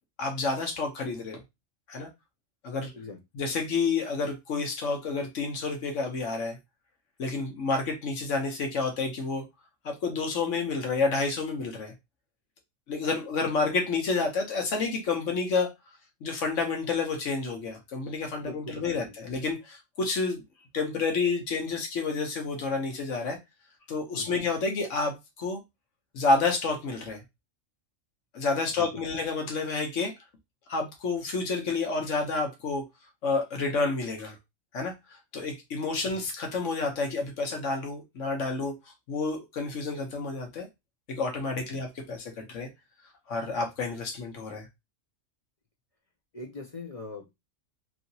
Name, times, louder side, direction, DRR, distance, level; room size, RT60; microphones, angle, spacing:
voice 1, 0.2-1.4 1.9-2.1 2.6-2.9 3.3-6.6 7.2-9.4 9.8-11.9 12.9-15.7 16.2-20.4 20.7-23.4 23.9-25.6 26.1-27.2 28.3-30.1 30.7-32.8 33.2-34.4 34.7-34.9 35.3-38.7 39.1-40.7 41.1-42.7 43.3-44.7, left 4 dB, 75° left, 1.1 m, -29 dB
voice 2, 18.4-19.1 24.1-24.4 28.8-28.9 36.0-36.2 41.6-41.8 46.3-47.3, left 3 dB, 50° left, 0.4 m, -42 dB
3.0 x 2.8 x 2.7 m
omnidirectional pair, 1.3 m